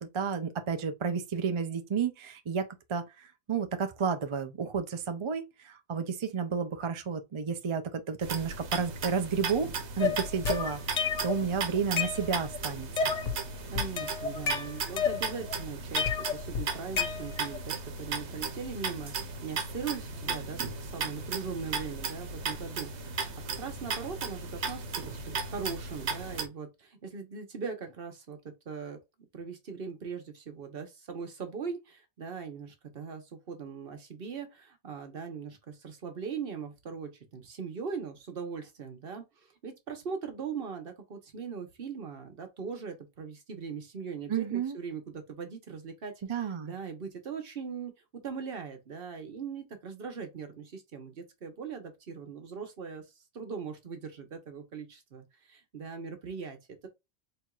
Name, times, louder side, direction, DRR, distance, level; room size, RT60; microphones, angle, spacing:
voice 1, 0.0-13.1 44.3-44.8 46.3-46.7, right 6 dB, 45° right, 0.4 m, -32 dB
sound 1, 8.2-26.5, right 4 dB, 90° right, 1.1 m, -36 dB
sound 2, 10.0-11.4 11.8-12.6 13.0-13.4 13.7-15.5 16.0-17.6, left 6 dB, 50° left, 0.5 m, -31 dB
voice 2, 13.7-23.3 23.6-28.4 28.7-29.0 29.3-39.2 39.6-45.0 45.3-53.0 53.3-56.6, right 6 dB, 60° right, 1.1 m, -40 dB
4.4 x 2.9 x 2.3 m
omnidirectional pair, 1.1 m